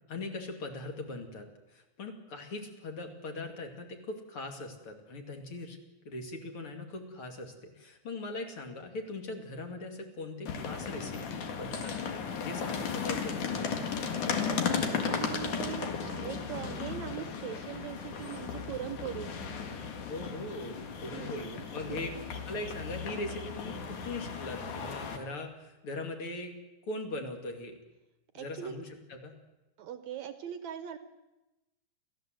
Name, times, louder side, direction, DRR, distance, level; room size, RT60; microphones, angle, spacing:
voice 1, 0.1-5.8 6.0-11.9 12.4-13.6 20.1-22.1 22.5-26.5 26.9-27.8 28.3-29.3, left 2 dB, 45° left, 4 dB, 3.2 m, -40 dB
sound 1, 10.5-25.2, left 6 dB, 70° left, 3.3 m, -35 dB
voice 2, 14.6-19.5 21.1-21.6 21.9-22.3 28.3-28.8 29.8-31.0, right 10 dB, 70° right, 10 dB, 2.0 m, -41 dB
29.5 x 15.0 x 7.8 m, 1.0 s
omnidirectional pair, 3.8 m